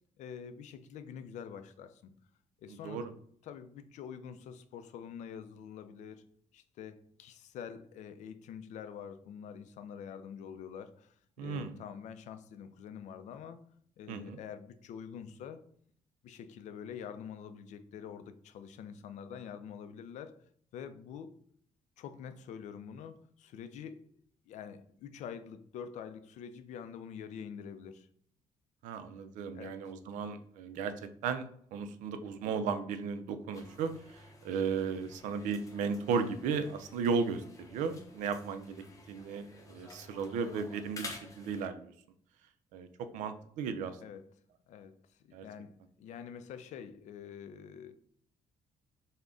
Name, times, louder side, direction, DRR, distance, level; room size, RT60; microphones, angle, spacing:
voice 1, 0.2-2.1 2.6-3.0 3.4-6.2 6.5-13.6 14.0-15.6 16.2-20.4 20.7-21.3 22.0-24.1 24.5-28.1 29.5-29.8 44.0-44.3 44.7-44.9 45.3-47.9, left 7 dB, 70° left, 10 dB, 0.4 m, -46 dB
voice 2, 2.7-3.1 11.4-11.7 14.1-14.4 28.8-31.5 31.7-37.4 37.7-38.8 39.1-41.9 42.7-42.9 43.1-44.0 45.3-45.5, right 5 dB, 90° right, 10 dB, 0.4 m, -35 dB
sound 1, 33.5-41.6, left 2 dB, 25° left, 0.7 m, -51 dB
3.6 x 2.1 x 3.6 m, 0.62 s
cardioid pair, 95°, 13 cm